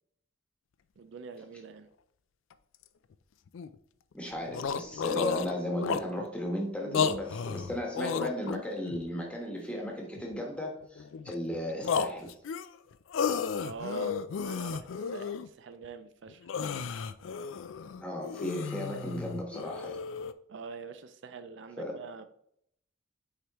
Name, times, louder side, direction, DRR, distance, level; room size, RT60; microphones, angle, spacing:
voice 1, 1.0-1.9 13.6-16.5 20.5-22.3, right 5 dB, 70° right, 10 dB, 0.4 m, -44 dB
sound 1, 2.5-2.6 2.8-2.9 3.5-3.7 4.1-4.2 4.4-6.3 6.8-9.0 9.6-10.4 10.8-11.5 11.8-15.5 15.8-15.9 16.3-20.3, left 6 dB, 80° left, 0.4 m, -33 dB
voice 2, 4.1-12.3 18.0-20.0 21.8-22.0, left 1 dB, 5° left, 0 dB, 1.2 m, -35 dB
6.4 x 4.9 x 3.0 m, 0.71 s
head